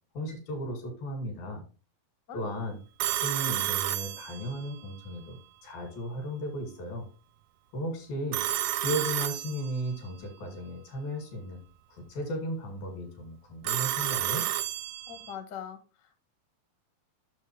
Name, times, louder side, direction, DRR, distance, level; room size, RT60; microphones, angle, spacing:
voice 1, 0.1-1.6 2.3-2.8 3.1-7.1 7.7-8.5 8.8-11.6 11.9-14.5, equal, 80° left, 3 dB, 4.5 m, -35 dB
Telephone, 3.0-4.8 8.3-10.0 13.6-15.3, right 14 dB, 85° right, 1.7 m, -31 dB
voice 2, 15.1-16.2, left 8 dB, 65° left, 7 dB, 1.0 m, -42 dB
9.3 x 6.6 x 3.2 m, 0.35 s
omnidirectional pair, 4.2 m